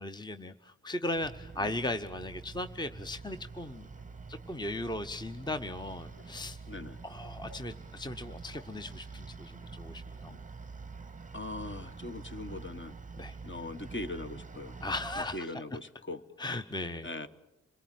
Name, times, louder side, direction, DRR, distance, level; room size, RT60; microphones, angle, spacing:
voice 1, 0.0-3.9 4.3-6.6 7.0-10.4 13.2-13.3 14.8-15.5 16.4-17.1, left 2 dB, 15° left, 9 dB, 0.9 m, -37 dB
sound 1, 1.1-15.4, right 4 dB, 25° right, 0.8 m, -46 dB
Laughter, 3.6-9.2 10.5-11.2, left 2 dB, 85° left, 6.3 m, -59 dB
voice 2, 6.7-7.0 11.3-13.0 13.4-14.8 15.2-16.2 17.0-17.3, left 2 dB, 35° left, 9 dB, 1.4 m, -40 dB
27.5 x 18.0 x 9.3 m, 1.0 s
cardioid pair, 50°, 31 cm